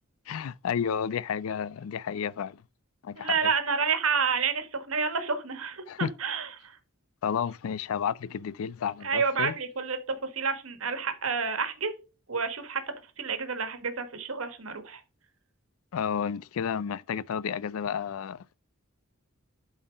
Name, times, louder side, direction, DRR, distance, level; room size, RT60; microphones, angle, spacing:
voice 1, 0.3-2.6 3.0-3.5 5.9-6.1 7.2-9.5 15.9-18.6, left 7 dB, 80° left, 0.4 m, -31 dB
voice 2, 3.2-6.8 9.0-11.9 12.3-12.8 13.2-15.0, right 5 dB, 80° right, 1.4 m, -29 dB
7.7 x 4.1 x 4.9 m
head